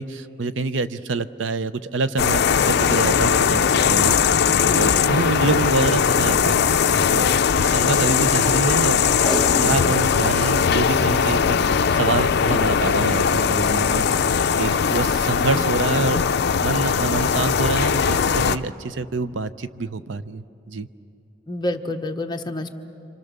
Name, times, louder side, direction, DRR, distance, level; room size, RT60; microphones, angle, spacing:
voice 1, 0.0-2.4 2.7-6.7 7.1-9.1 9.6-11.6 11.9-16.2 16.6-20.9, right 3 dB, 70° right, 13 dB, 0.6 m, -26 dB
sound 1, 2.2-18.6, left 6 dB, 60° left, 0.5 m, -19 dB
voice 2, 4.5-5.0 21.5-22.7, left 1 dB, 25° left, 4 dB, 1.1 m, -28 dB
Packing tape duct tape, 9.1-10.2 10.6-10.7 10.8-10.9 11.5-11.8 12.8-13.1 13.6-13.7, left 1 dB, ahead, 1.2 m, -29 dB
29.0 x 25.0 x 6.7 m, 2.7 s
head